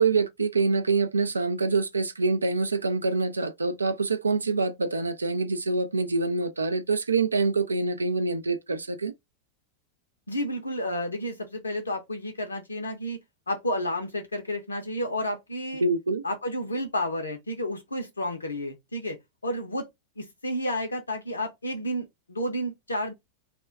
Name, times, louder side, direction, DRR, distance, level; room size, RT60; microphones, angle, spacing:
voice 1, 0.0-9.1 15.8-16.2, right 3 dB, 75° right, 0.3 m, -25 dB
voice 2, 10.3-13.2 13.5-15.8 16.2-19.9 20.2-23.1, left 1 dB, 75° left, 0.5 m, -31 dB
2.3 x 2.1 x 3.4 m
figure-of-eight pair, 90°, 0 cm